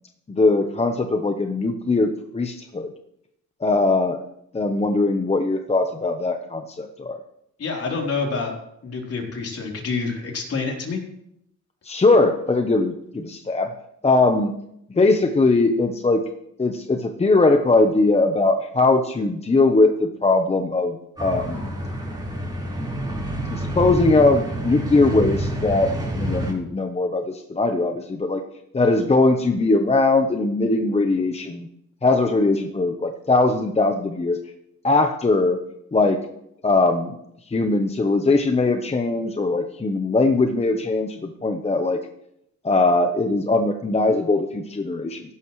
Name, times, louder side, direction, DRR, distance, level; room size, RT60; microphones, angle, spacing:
voice 1, 0.3-2.9 3.6-4.2 4.5-7.2 11.8-13.7 14.0-14.6 14.9-16.2 16.6-21.7 23.5-28.4 28.7-31.7 32.0-34.4 34.8-35.6 35.9-36.2 36.6-37.1 37.5-42.0 42.6-45.2, left 3 dB, 20° left, 5 dB, 1.0 m, -20 dB
voice 2, 7.6-8.5 8.8-11.0, left 4 dB, 50° left, -1 dB, 3.9 m, -27 dB
sound 1, 21.2-26.5, right 1 dB, 15° right, 4.5 m, -28 dB
15.5 x 12.0 x 3.2 m, 0.76 s
cardioid pair, 90°, 30 cm